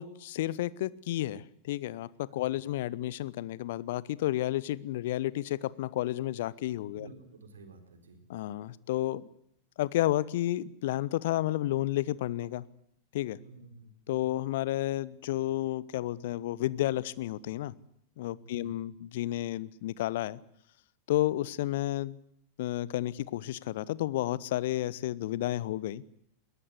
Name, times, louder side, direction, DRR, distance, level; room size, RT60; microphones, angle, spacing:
voice 1, 0.0-7.1 8.3-9.3 9.8-12.6 13.1-13.4 14.1-17.7 18.2-20.4 21.1-22.2 22.6-26.0, left 14 dB, 55° left, 21 dB, 0.9 m, -31 dB
voice 2, 6.9-8.2 13.4-14.3 18.4-18.7, right 3 dB, 70° right, 8 dB, 4.2 m, -51 dB
21.5 x 18.5 x 9.8 m, 0.74 s
figure-of-eight pair, 90°, 0 cm